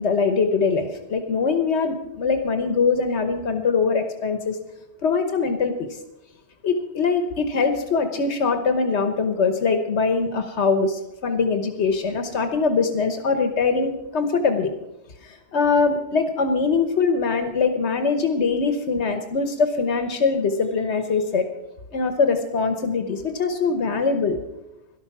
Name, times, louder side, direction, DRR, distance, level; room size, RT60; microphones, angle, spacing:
voice 1, 0.0-4.6 5.0-5.7 6.6-14.7 15.2-21.5 21.9-24.4, left 4 dB, 85° left, 7 dB, 1.3 m, -22 dB
12.5 x 12.0 x 6.0 m, 0.94 s
omnidirectional pair, 1.1 m